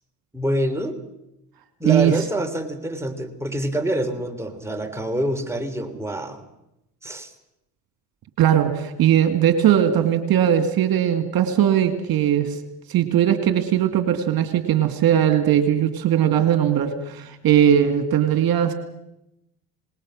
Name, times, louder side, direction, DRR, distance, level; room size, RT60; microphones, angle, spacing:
voice 1, 0.3-1.0 1.8-6.4 7.0-7.3, right 1 dB, 5° right, 4 dB, 3.2 m, -26 dB
voice 2, 8.4-12.6 12.9-18.7, right 10 dB, 55° right, 9 dB, 2.3 m, -19 dB
26.0 x 20.0 x 6.4 m, 0.87 s
hypercardioid pair, 65°, 42 cm